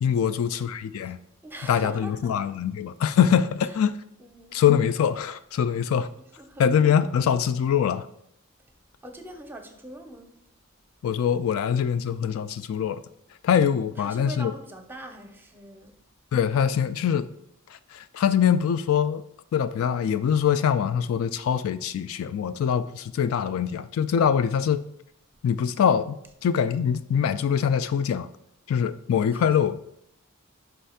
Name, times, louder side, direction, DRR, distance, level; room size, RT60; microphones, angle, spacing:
voice 1, 0.0-1.2 1.7-4.0 4.5-6.1 6.6-8.1 11.0-13.0 13.4-14.5 16.3-17.3 17.9-19.2 19.5-24.9 25.4-28.3 28.7-29.9, left 8 dB, 65° left, 0.3 m, -23 dB
voice 2, 1.4-2.5 3.7-3.8 4.2-4.6 6.4-6.6 9.0-10.3 14.0-15.9 29.3-29.5, right 1 dB, 10° right, 0.6 m, -42 dB
5.5 x 3.3 x 5.6 m
head